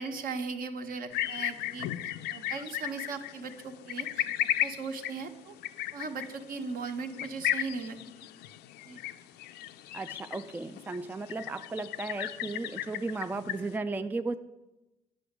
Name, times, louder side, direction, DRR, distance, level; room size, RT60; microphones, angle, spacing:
voice 1, 0.0-4.3 4.6-5.5 5.9-8.3 8.8-9.0, right 4 dB, 55° right, 7 dB, 1.3 m, -38 dB
sound 1, 1.1-13.8, left 13 dB, 80° left, 0.6 m, -36 dB
voice 2, 9.9-14.4, right 3 dB, 10° right, 9 dB, 0.4 m, -35 dB
10.0 x 6.1 x 8.1 m, 1.0 s
cardioid pair, 110°, 17 cm